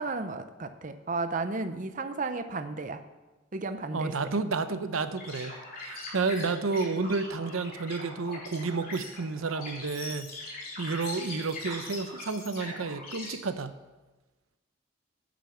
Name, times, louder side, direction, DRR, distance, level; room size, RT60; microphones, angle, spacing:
voice 1, 0.0-3.0 3.5-4.1, right 3 dB, 40° right, 9 dB, 0.7 m, -33 dB
voice 2, 3.9-5.5 5.8-13.7, right 4 dB, 90° right, 11 dB, 0.7 m, -31 dB
sound 1, 5.2-13.3, left 2 dB, 45° left, 3.9 m, -41 dB
10.0 x 9.2 x 7.0 m, 1.2 s
head